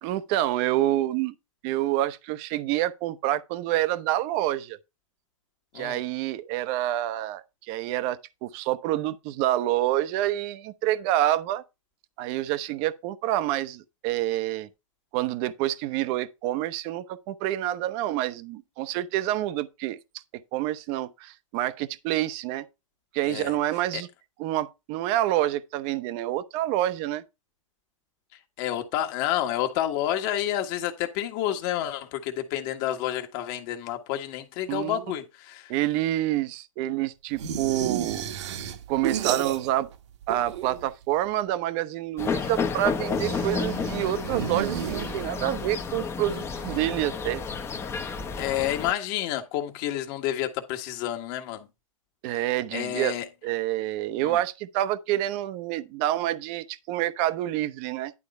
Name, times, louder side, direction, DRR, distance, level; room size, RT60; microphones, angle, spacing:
voice 1, 0.0-1.3 1.6-4.8 5.7-11.6 12.2-14.7 15.1-20.0 20.5-22.6 23.1-24.1 24.4-27.2 34.7-35.0 35.7-38.3 38.9-39.9 40.3-47.4 52.2-53.1 53.4-58.1, right 14 dB, 35° right, 0.8 m, -27 dB
voice 2, 28.6-35.7 48.4-51.7 52.7-53.2 54.2-54.4, left 12 dB, 40° left, 1.6 m, -29 dB
sound 1, 37.4-40.0 40.2-41.0 43.0-45.6, right 9 dB, 60° right, 1.2 m, -32 dB
sound 2, 42.2-48.9, left 5 dB, 15° left, 0.9 m, -31 dB
11.0 x 3.8 x 5.5 m
hypercardioid pair, 130°, 17 cm